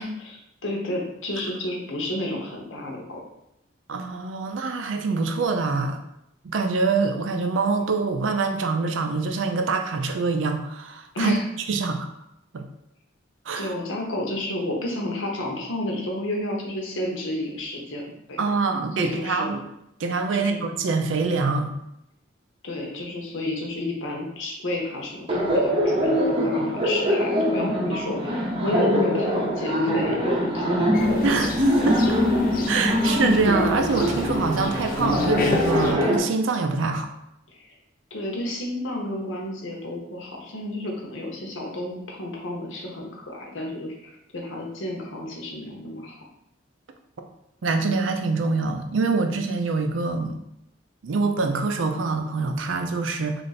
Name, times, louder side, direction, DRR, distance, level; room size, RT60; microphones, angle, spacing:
voice 1, 0.0-3.2 11.1-11.5 13.5-18.4 19.0-19.5 20.3-20.6 22.6-31.2 37.5-37.7 38.1-46.2, left 1 dB, 75° left, 0 dB, 0.8 m, -31 dB
voice 2, 3.9-6.0 6.4-11.3 11.7-12.1 12.5-12.7 13.5-13.7 18.4-19.6 20.0-21.7 31.2-32.2 32.7-37.1 47.6-50.4 51.0-53.4, right 4 dB, 75° right, 6 dB, 0.4 m, -25 dB
Laughter, 25.3-36.2, equal, 30° right, 0.6 m, -23 dB
sound 1, 30.9-35.9, left 3 dB, 45° left, 0.4 m, -33 dB
3.2 x 2.5 x 4.0 m, 0.82 s
head